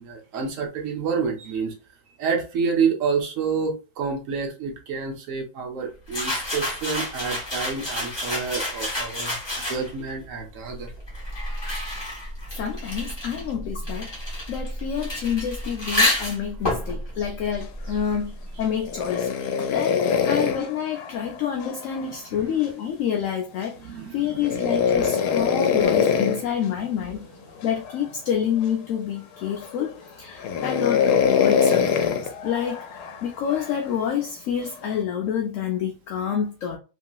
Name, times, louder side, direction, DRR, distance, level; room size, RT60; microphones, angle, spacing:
voice 1, 0.0-1.7 2.2-9.4 9.6-10.9 17.2-17.3 17.9-18.0 19.4-19.5 22.3-22.5 23.8-25.2, right 5 dB, 60° right, 1.0 m, -29 dB
sound 1, 6.1-10.1 10.9-18.3, left 1 dB, 20° left, 1.0 m, -29 dB
voice 2, 12.6-14.1 14.5-18.3 18.6-19.3 19.7-23.7 24.1-27.2 27.6-36.8, left 8 dB, 70° left, 0.8 m, -28 dB
sound 2, 18.8-22.1 24.4-26.5 27.6-28.1 28.6-28.7 29.4-29.9 30.4-33.8 34.7-35.0, left 7 dB, 85° left, 1.1 m, -23 dB
3.0 x 2.8 x 2.2 m
omnidirectional pair, 1.6 m